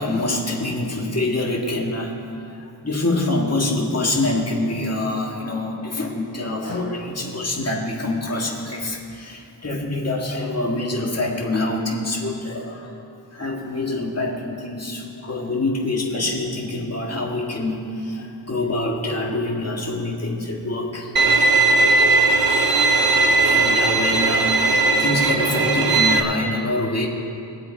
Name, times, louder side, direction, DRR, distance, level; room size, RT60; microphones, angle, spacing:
voice 1, 0.0-2.1 2.8-12.9 13.3-21.1 23.3-27.1, left 2 dB, 35° left, -1 dB, 1.9 m, -25 dB
Bowed string instrument, 21.2-26.2, right 3 dB, 55° right, 0.9 m, -18 dB
22.0 x 7.8 x 4.5 m, 2.6 s
wide cardioid pair, 115°, 42 cm